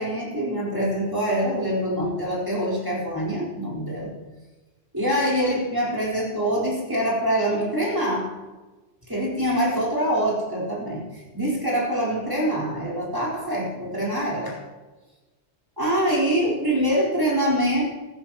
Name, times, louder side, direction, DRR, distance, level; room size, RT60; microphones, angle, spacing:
voice 1, 0.0-4.1 4.9-8.3 9.1-14.6 15.8-17.9, equal, 20° right, -6 dB, 4.4 m, -24 dB
15.5 x 15.0 x 3.0 m, 1.2 s
omnidirectional pair, 1.1 m